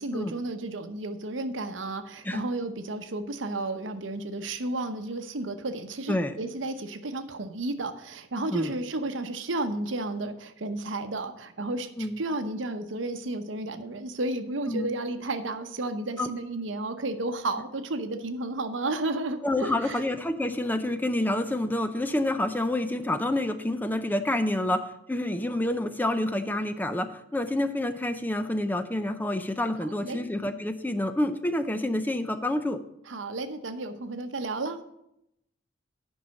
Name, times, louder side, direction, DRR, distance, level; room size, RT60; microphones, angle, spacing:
voice 1, 0.0-20.0 30.0-30.2 33.1-34.8, right 2 dB, 75° right, 9 dB, 0.9 m, -32 dB
voice 2, 19.4-24.8 25.1-32.8, left 1 dB, 10° left, 9 dB, 0.5 m, -28 dB
9.7 x 5.5 x 6.4 m, 0.79 s
head